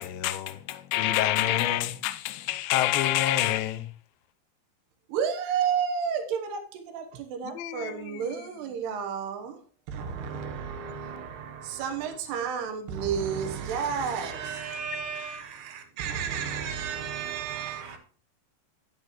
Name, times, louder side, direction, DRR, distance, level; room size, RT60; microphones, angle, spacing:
voice 1, 0.0-3.9 7.5-8.3, left 13 dB, 75° left, 2.3 m, -27 dB
voice 2, 5.1-9.6 9.9-14.9 15.2-18.0, right 7 dB, 90° right, 3.3 m, -32 dB
voice 3, 14.3-15.7 17.0-18.0, right 5 dB, 60° right, 2.9 m, -39 dB
10.5 x 10.5 x 3.1 m
omnidirectional pair, 4.6 m